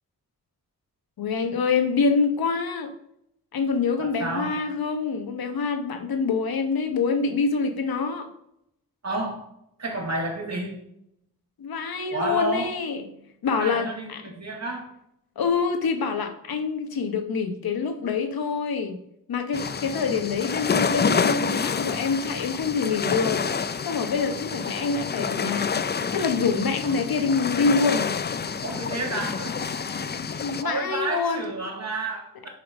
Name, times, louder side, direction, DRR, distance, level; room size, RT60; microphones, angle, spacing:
voice 1, 1.2-2.9 3.5-8.3 11.6-13.0 13.4-14.2 15.4-18.9 19.3-23.5 23.8-25.7 26.1-28.2 30.4-31.5, left 5 dB, 85° left, 6 dB, 1.1 m, -26 dB
voice 2, 4.0-4.6 9.0-9.5 9.8-10.8 12.1-12.7 13.6-14.9 26.9-27.1 28.6-30.2 30.6-32.5, right 2 dB, 50° right, -1 dB, 2.1 m, -31 dB
sound 1, 19.5-30.6, left 6 dB, 30° left, 0.4 m, -28 dB
9.4 x 3.2 x 5.2 m, 0.76 s
wide cardioid pair, 80°, 35 cm